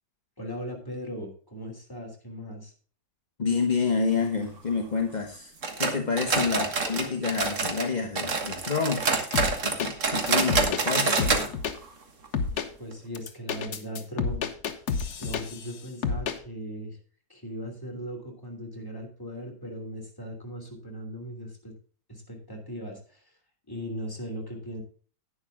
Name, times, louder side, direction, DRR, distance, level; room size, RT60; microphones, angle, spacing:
voice 1, 0.4-2.7 6.4-6.5 12.5-14.5 15.2-17.0 17.3-21.8 22.1-23.3 23.7-24.8, equal, 10° left, 0 dB, 2.9 m, -38 dB
voice 2, 3.4-5.5 5.8-9.1 9.6-11.6, left 5 dB, 30° left, 3 dB, 0.9 m, -28 dB
sound 1, 5.6-7.9 8.1-11.5 11.7-11.8 12.2-12.3 12.9-13.0, right 4 dB, 45° right, 1.7 m, -27 dB
sound 2, 9.3-9.9 10.3-11.8 12.3-12.7 13.2-15.7 16.0-16.4, left 6 dB, 60° left, 1.5 m, -29 dB
11.0 x 9.7 x 3.6 m, 0.41 s
omnidirectional pair, 2.0 m